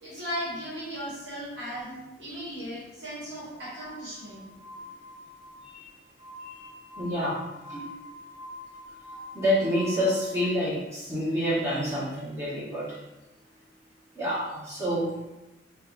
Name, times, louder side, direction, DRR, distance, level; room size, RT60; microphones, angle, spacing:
voice 1, 0.0-4.4, equal, 60° right, -10 dB, 1.3 m, -37 dB
Glass, 3.7-10.5, left 1 dB, 75° left, 0.3 m, -45 dB
voice 2, 6.4-6.7 7.0-7.4 7.7-7.8 9.3-13.0 14.1-15.1, equal, 15° right, -9 dB, 1.0 m, -28 dB
4.4 x 2.3 x 2.4 m, 1.0 s
head